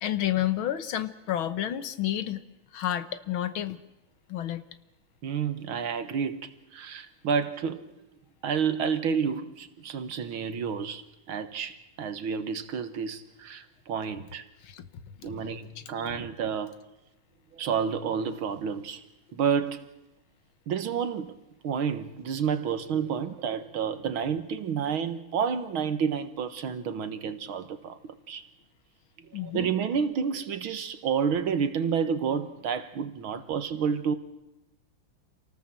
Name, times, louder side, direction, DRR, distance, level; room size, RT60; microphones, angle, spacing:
voice 1, 0.0-2.4 2.7-3.8 4.3-4.6 14.6-15.4 15.8-16.1 29.3-29.7, left 12 dB, 70° left, 1.8 m, -31 dB
voice 2, 5.2-7.9 8.4-14.5 15.2-16.7 17.5-19.0 19.3-19.9 20.7-21.4 21.6-28.5 29.4-34.2, right 7 dB, 70° right, 2.1 m, -30 dB
27.5 x 18.5 x 7.5 m
omnidirectional pair, 2.4 m